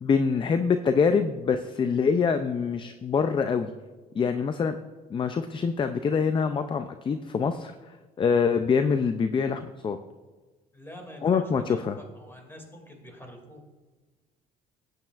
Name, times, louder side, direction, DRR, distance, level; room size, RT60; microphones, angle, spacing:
voice 1, 0.0-3.7 4.1-4.8 5.1-10.0 11.2-12.0, left 5 dB, 30° left, 9 dB, 0.5 m, -25 dB
voice 2, 10.7-13.7, equal, 15° left, 2 dB, 2.5 m, -46 dB
15.0 x 9.1 x 2.5 m, 1.3 s
cardioid pair, 110°, 17 cm